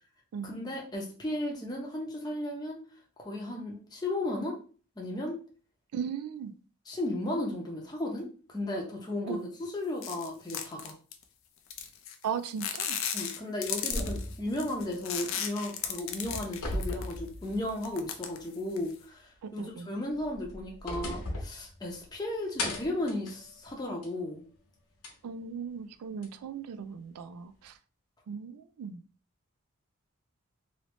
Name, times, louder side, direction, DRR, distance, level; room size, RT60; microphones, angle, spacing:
voice 1, 0.4-2.8 3.2-4.6 5.0-5.4 6.9-10.9 13.1-24.4, left 1 dB, 20° left, -2 dB, 0.6 m, -35 dB
voice 2, 5.9-6.5 9.3-9.4 12.2-13.0 19.4-19.9 25.2-27.7 28.3-29.0, right 7 dB, 90° right, 12 dB, 0.3 m, -37 dB
sound 1, 10.0-11.2 11.7-12.2 12.6-17.3 17.7-18.9, left 8 dB, 65° left, 0.5 m, -35 dB
sound 2, 13.9-15.7 16.0-18.0 18.4-18.5 20.1-22.2 22.6-24.3 25.0-25.1 26.2-26.3, left 1 dB, 85° left, 1.0 m, -37 dB
3.2 x 2.6 x 3.0 m, 0.38 s
head